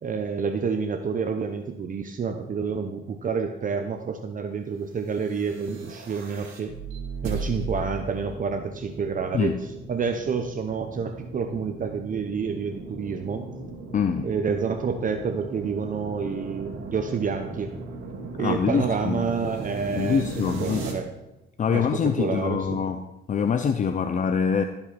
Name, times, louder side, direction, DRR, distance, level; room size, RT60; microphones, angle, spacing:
voice 1, 0.0-6.8 7.2-9.5 9.9-13.4 14.2-17.7 18.4-20.2 20.6-21.1 21.7-22.8, right 5 dB, 40° right, 6 dB, 0.8 m, -28 dB
sound 1, 5.2-20.9, right 3 dB, 85° right, 2.1 m, -37 dB
voice 2, 13.9-14.3 18.4-19.2 20.0-20.9 21.6-23.0 23.3-24.6, left 6 dB, 40° left, 8 dB, 0.6 m, -24 dB
16.5 x 5.6 x 4.2 m, 1.0 s
cardioid pair, 90°, 20 cm